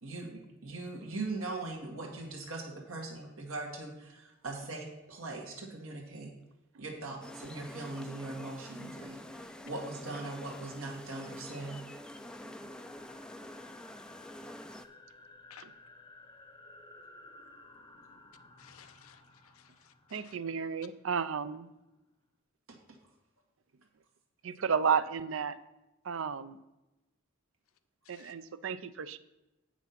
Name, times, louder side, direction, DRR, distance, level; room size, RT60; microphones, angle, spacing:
voice 1, 0.0-6.3 6.8-11.8 22.7-22.8, right 2 dB, 85° right, 1.8 m, -40 dB
sound 1, 7.2-14.9, left 1 dB, 5° left, 0.3 m, -47 dB
sound 2, 8.8-21.5, left 3 dB, 20° left, 0.8 m, -56 dB
voice 2, 18.6-20.4 28.0-28.3, left 9 dB, 90° left, 0.6 m, -57 dB
voice 3, 20.1-21.7 24.4-25.6 26.0-26.6 28.1-29.2, right 6 dB, 65° right, 0.5 m, -32 dB
8.2 x 6.1 x 5.8 m
head